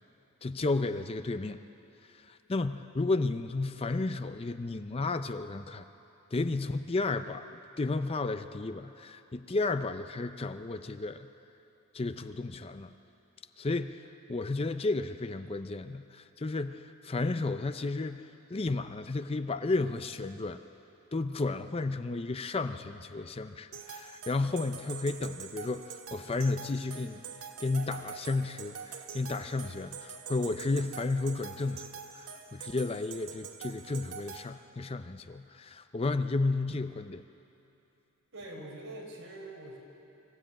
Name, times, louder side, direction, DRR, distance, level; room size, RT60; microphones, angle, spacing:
voice 1, 0.4-1.6 2.1-5.8 6.3-11.3 11.9-12.9 13.6-14.0 14.3-20.6 21.1-27.2 27.6-31.9 32.1-37.2, left 3 dB, 25° left, 10 dB, 0.5 m, -33 dB
sound 1, 23.7-34.4, right 6 dB, 90° right, 1.7 m, -45 dB
voice 2, 38.3-39.8, right 1 dB, 60° right, -1 dB, 4.7 m, -44 dB
25.0 x 15.5 x 8.9 m, 2.8 s
head